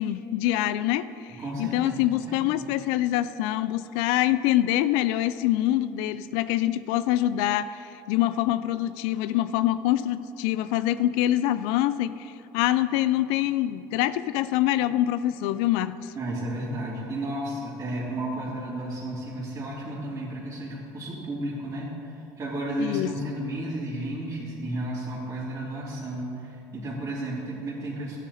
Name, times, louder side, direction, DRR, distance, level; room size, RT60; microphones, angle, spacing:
voice 1, 0.0-16.1 22.8-23.1, left 13 dB, 75° left, 15 dB, 0.4 m, -25 dB
voice 2, 1.3-2.0 2.3-2.7 16.1-21.9 22.4-28.2, right 1 dB, 30° right, -8 dB, 3.1 m, -33 dB
13.5 x 9.2 x 4.2 m, 2.7 s
supercardioid pair, 90°, 9 cm